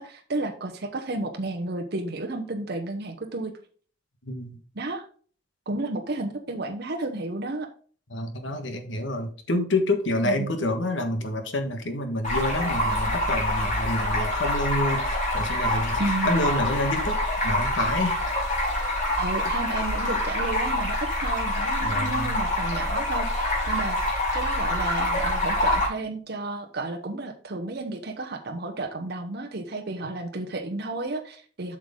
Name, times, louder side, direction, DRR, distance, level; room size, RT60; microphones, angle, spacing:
voice 1, 0.0-3.5 4.8-5.0 5.7-7.7 10.2-10.5 16.0-16.3 19.2-31.8, right 2 dB, 55° right, 3 dB, 0.9 m, -32 dB
voice 2, 4.2-4.6 8.1-18.2 21.8-22.3, left 1 dB, 70° left, 6 dB, 1.4 m, -28 dB
Stream, 12.2-25.9, left 1 dB, 40° left, 4.4 m, -26 dB
7.8 x 6.4 x 3.7 m, 0.43 s
head